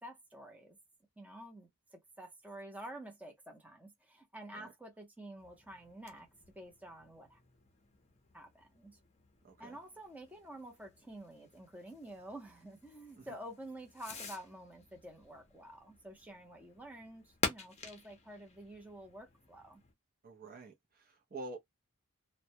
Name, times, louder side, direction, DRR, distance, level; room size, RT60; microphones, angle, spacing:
voice 1, 0.0-0.8 1.2-6.3 6.6-7.4 8.3-9.0 9.6-19.8, right 1 dB, 5° right, 0.7 m, -50 dB
Fireworks, 5.3-19.9, left 4 dB, 30° left, 0.6 m, -48 dB
voice 2, 9.4-9.8 13.2-13.3 20.2-21.6, right 2 dB, 40° right, 0.6 m, -48 dB
2.1 x 2.1 x 2.7 m
head